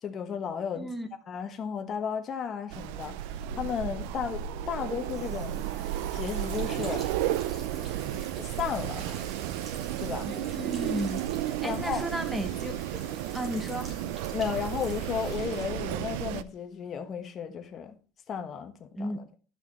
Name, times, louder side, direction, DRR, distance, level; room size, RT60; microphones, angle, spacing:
voice 1, 0.0-0.9 1.3-5.6 6.1-7.1 8.1-9.2 10.0-10.3 11.6-12.0 14.3-17.9 18.3-19.2, left 7 dB, 35° left, 1.3 m, -34 dB
voice 2, 0.7-1.1 10.2-11.2 11.6-13.0 13.3-13.9 19.0-19.2, equal, 5° right, 1.2 m, -34 dB
Wind, 2.7-16.4, right 12 dB, 80° right, 0.5 m, -33 dB
sound 1, 4.9-16.3, right 2 dB, 30° right, 3.7 m, -47 dB
sound 2, 11.7-17.1, left 2 dB, 75° left, 1.3 m, -52 dB
12.5 x 6.0 x 4.1 m
cardioid pair, 145°, 0 cm